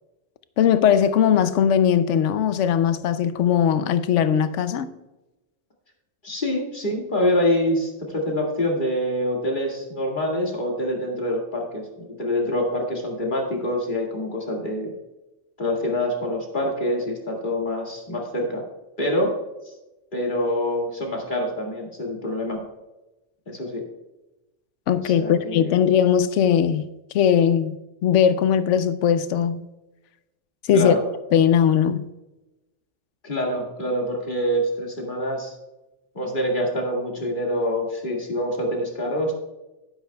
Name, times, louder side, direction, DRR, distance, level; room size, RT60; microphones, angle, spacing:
voice 1, 0.6-4.9 24.9-26.8 27.1-27.8 28.0-29.6 30.7-31.0 31.3-32.1, left 8 dB, 80° left, 1.0 m, -19 dB
voice 2, 6.2-14.9 15.6-18.6 19.0-19.4 19.6-19.7 20.1-22.6 23.5-23.9 25.0-25.8 30.7-31.0 33.2-35.6 36.1-39.3, left 1 dB, 40° left, 2.2 m, -25 dB
11.5 x 10.5 x 2.3 m
omnidirectional pair, 1.2 m